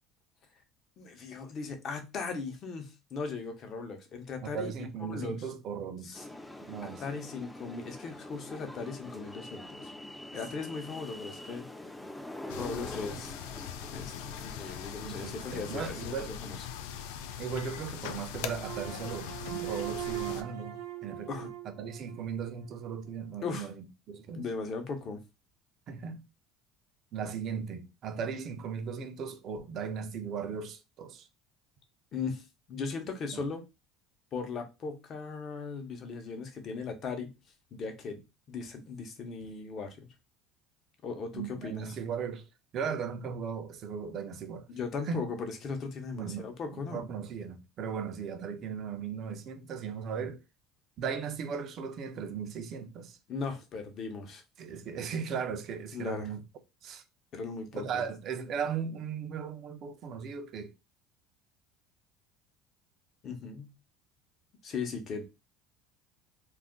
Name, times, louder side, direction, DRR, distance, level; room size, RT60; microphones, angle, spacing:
voice 1, 1.0-4.7 5.0-5.4 6.0-6.2 6.8-9.9 10.3-11.7 12.5-13.4 13.9-16.6 21.3-21.5 23.4-23.7 24.3-25.2 32.1-32.4 32.7-33.6 34.3-37.3 37.7-38.2 38.5-40.1 41.0-41.9 44.7-47.0 53.3-54.4 55.9-56.2 57.3-58.1 63.2-63.7 64.6-65.2, left 4 dB, 45° left, 0.8 m, -38 dB
voice 2, 4.4-6.3 6.6-7.2 13.1-13.2 15.1-16.3 17.4-21.3 21.8-24.5 25.9-26.3 27.1-31.3 33.3-33.4 41.3-42.5 42.7-44.7 45.1-45.3 46.1-46.5 46.7-50.4 51.0-53.2 54.6-56.4 56.8-57.0 57.7-60.7, right 6 dB, 50° right, 0.5 m, -37 dB
sound 1, 6.1-16.2, left 1 dB, 10° left, 0.5 m, -45 dB
sound 2, 12.5-20.4, left 8 dB, 80° left, 0.3 m, -41 dB
sound 3, 18.6-22.9, right 13 dB, 85° right, 0.8 m, -41 dB
2.4 x 2.1 x 3.6 m
supercardioid pair, 110°, 0 cm